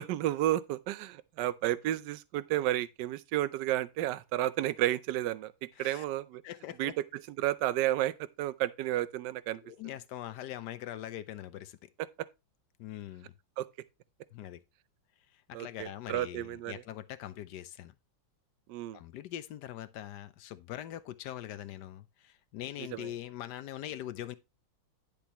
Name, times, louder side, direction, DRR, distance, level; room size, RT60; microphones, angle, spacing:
voice 1, 0.0-5.5 5.8-6.4 6.8-7.1 7.4-9.6 13.6-13.7 15.5-16.8 18.7-19.0 22.9-23.1, right 14 dB, 70° right, 1.1 m, -31 dB
voice 2, 6.4-7.0 9.5-11.9 12.8-13.3 14.3-14.6 15.3-17.9 18.9-24.4, left 12 dB, 70° left, 1.1 m, -42 dB
10.0 x 6.9 x 2.9 m
omnidirectional pair, 2.2 m